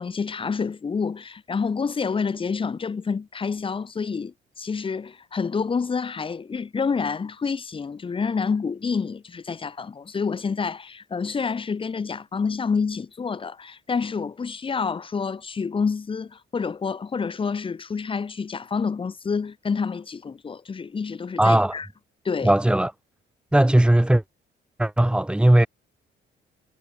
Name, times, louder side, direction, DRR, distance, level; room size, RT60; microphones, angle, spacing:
voice 1, 0.0-21.9 22.2-22.5, left 5 dB, 25° left, 0.7 m, -28 dB
voice 2, 21.4-21.8 22.4-22.9 23.5-24.2 24.8-25.7, right 1 dB, 5° right, 0.5 m, -18 dB
cardioid pair, 90°, 20 cm